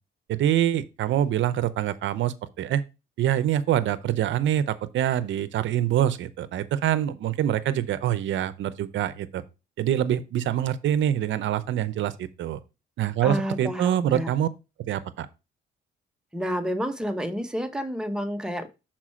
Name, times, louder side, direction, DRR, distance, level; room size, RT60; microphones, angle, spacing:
voice 1, 0.3-2.8 3.2-9.4 9.8-12.6 13.0-14.5 14.9-15.3, right 11 dB, 75° right, 0.7 m, -25 dB
voice 2, 13.2-14.3 16.3-18.7, equal, 5° right, 1.0 m, -29 dB
6.1 x 4.5 x 4.3 m
cardioid pair, 90°, 20 cm